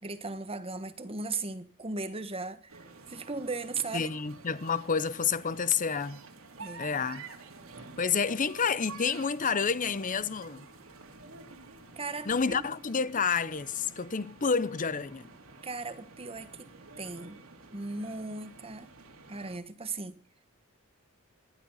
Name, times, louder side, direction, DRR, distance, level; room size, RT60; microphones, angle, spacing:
voice 1, 0.0-4.1 6.6-6.9 11.9-12.7 15.6-16.7 17.0-17.4 17.7-18.9 19.3-20.2, right 3 dB, 30° right, 1.5 m, -37 dB
sound 1, 2.7-19.6, right 3 dB, 75° right, 3.3 m, -50 dB
voice 2, 3.9-6.2 6.8-7.2 8.0-10.7 12.3-15.3, left 6 dB, 40° left, 0.8 m, -29 dB
19.0 x 12.0 x 5.7 m
head